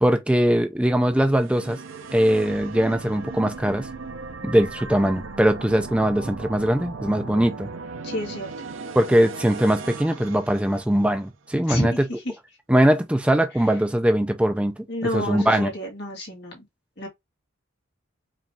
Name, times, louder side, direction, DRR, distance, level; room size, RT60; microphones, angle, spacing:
voice 1, 0.0-1.8 2.1-3.9 4.4-7.7 8.9-12.1 12.7-14.7 15.1-15.7, right 1 dB, 5° right, 0.4 m, -21 dB
sound 1, 1.1-11.3, right 4 dB, 65° right, 0.6 m, -37 dB
voice 2, 8.0-8.5 11.7-12.3 14.9-16.7 17.0-17.1, left 1 dB, 50° left, 2.0 m, -30 dB
5.0 x 3.1 x 2.7 m
head